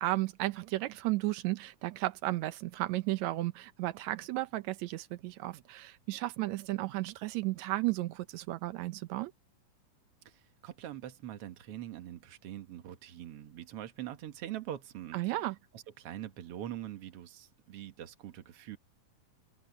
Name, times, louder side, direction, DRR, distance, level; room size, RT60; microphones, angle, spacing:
voice 1, 0.0-9.3 15.1-15.5, right 17 dB, 80° right, 1.7 m, -34 dB
voice 2, 10.3-15.4 15.7-18.8, right 12 dB, 55° right, 1.8 m, -43 dB
omnidirectional pair, 4.0 m